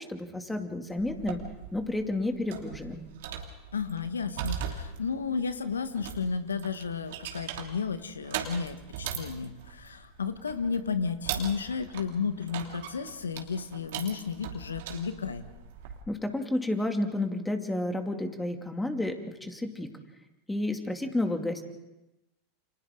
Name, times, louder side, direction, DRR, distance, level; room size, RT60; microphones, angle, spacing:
voice 1, 0.0-1.4 1.7-3.0 16.1-19.9 20.5-21.6, left 1 dB, 10° left, 4 dB, 2.6 m, -31 dB
sound 1, 1.0-16.0, right 8 dB, 70° right, 2.9 m, -40 dB
voice 2, 3.7-15.5, left 5 dB, 90° left, 10 dB, 1.4 m, -33 dB
30.0 x 26.5 x 3.9 m, 0.95 s
hypercardioid pair, 95°, 0 cm